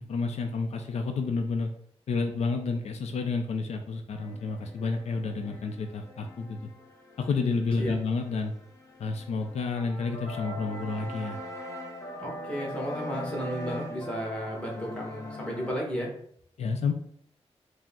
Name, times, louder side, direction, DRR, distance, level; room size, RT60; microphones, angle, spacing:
voice 1, 0.1-1.7 2.1-6.7 7.2-8.6 9.0-11.4 16.6-16.9, left 4 dB, 80° left, 5 dB, 0.4 m, -30 dB
sound 1, 4.2-15.8, left 1 dB, 30° left, 0.7 m, -42 dB
voice 2, 12.2-16.1, equal, 10° left, -3 dB, 1.2 m, -33 dB
4.9 x 2.1 x 3.6 m, 0.64 s
wide cardioid pair, 135°, 11 cm